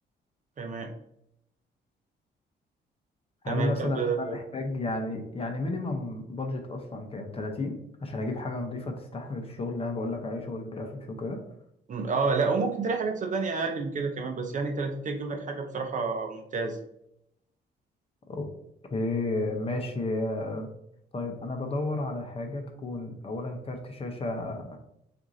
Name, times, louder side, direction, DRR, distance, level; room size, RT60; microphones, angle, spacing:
voice 1, 0.6-0.9 3.5-4.4 11.9-16.8, right 4 dB, 45° right, 4 dB, 0.7 m, -29 dB
voice 2, 3.4-11.4 18.3-18.5 18.9-20.7 21.1-24.8, left 2 dB, 30° left, 4 dB, 0.7 m, -32 dB
6.0 x 2.6 x 2.7 m, 0.77 s
cardioid pair, 120°, 19 cm